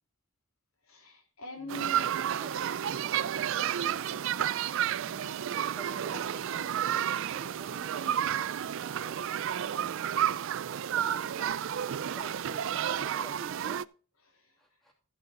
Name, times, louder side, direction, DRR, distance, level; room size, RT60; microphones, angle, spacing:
voice 1, 0.9-2.2 5.0-5.4 12.1-12.2 14.3-14.5, left 1 dB, 80° left, 2.9 m, -44 dB
voice 2, 1.6-1.9 2.4-2.5 3.0-4.3 5.8-9.3 10.8-13.9 14.6-14.9, right 1 dB, ahead, 2.8 m, -50 dB
sound 1, 1.7-13.8, right 10 dB, 65° right, 0.4 m, -31 dB
14.0 x 6.5 x 4.2 m
head